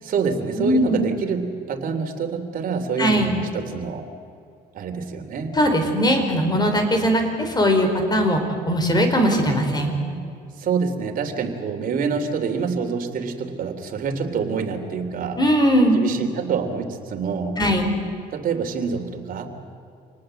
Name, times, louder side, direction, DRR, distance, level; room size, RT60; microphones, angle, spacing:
voice 1, 0.0-4.1 4.7-5.6 10.6-15.4 15.9-17.6 18.3-19.5, right 5 dB, 55° right, 4 dB, 3.2 m, -26 dB
voice 2, 0.6-1.0 3.0-3.4 5.5-8.4 8.6-10.0 15.4-16.0 17.6-17.9, equal, 25° left, 5 dB, 4.7 m, -19 dB
27.5 x 19.5 x 7.8 m, 2.4 s
cardioid pair, 110°, 17 cm